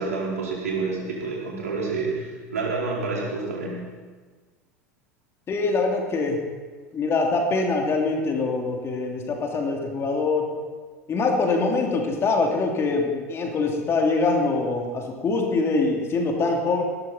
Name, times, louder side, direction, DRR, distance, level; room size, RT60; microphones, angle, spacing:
voice 1, 0.0-3.8, right 3 dB, 70° right, -4 dB, 4.4 m, -28 dB
voice 2, 5.5-6.4 6.9-10.5 11.1-16.8, left 3 dB, 30° left, 1 dB, 3.0 m, -24 dB
19.0 x 13.0 x 4.3 m, 1.4 s
figure-of-eight pair, 75°, 8 cm